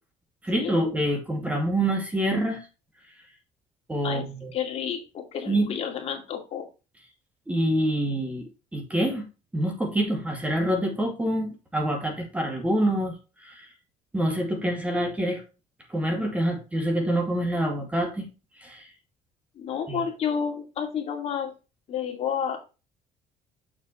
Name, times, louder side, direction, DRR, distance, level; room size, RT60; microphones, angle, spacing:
voice 1, 0.4-2.6 3.9-4.5 5.5-5.7 7.5-8.5 8.7-9.2 9.5-13.2 13.4-13.7 14.1-15.4 15.9-18.3 18.6-18.9 19.9-20.0, right 1 dB, 10° right, 2 dB, 2.5 m, -26 dB
voice 2, 4.5-6.7 19.6-21.5 21.9-22.6, left 7 dB, 50° left, 2 dB, 2.6 m, -30 dB
6.8 x 6.5 x 3.2 m, 0.30 s
cardioid pair, 115°, 13 cm